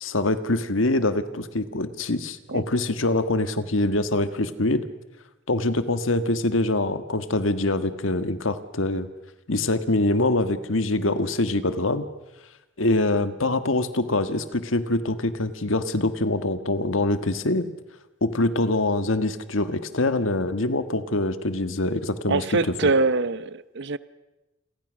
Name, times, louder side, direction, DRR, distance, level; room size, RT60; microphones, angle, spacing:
voice 1, 0.0-4.8 5.5-9.1 9.5-12.0 12.8-17.7 18.2-22.4 22.8-22.9, left 2 dB, 90° left, 11 dB, 1.6 m, -24 dB
voice 2, 22.3-24.0, right 3 dB, 65° right, 16 dB, 0.8 m, -23 dB
28.5 x 23.0 x 6.4 m, 1.0 s
head